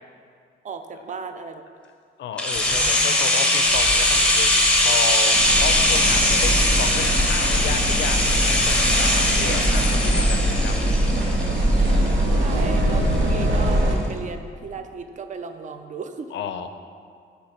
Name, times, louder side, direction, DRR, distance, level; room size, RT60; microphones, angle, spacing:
voice 1, 0.6-1.6 12.4-16.3, right 5 dB, 40° right, 7 dB, 0.4 m, -35 dB
voice 2, 2.2-4.6 4.8-11.4 16.3-16.7, left 7 dB, 75° left, 8 dB, 0.5 m, -32 dB
sound 1, 2.4-12.2 12.5-12.6, left 1 dB, 5° left, 0.6 m, -21 dB
sound 2, 5.3-13.9, right 1 dB, 70° right, 1.0 m, -22 dB
8.2 x 3.3 x 5.7 m, 2.2 s
wide cardioid pair, 160°, 19 cm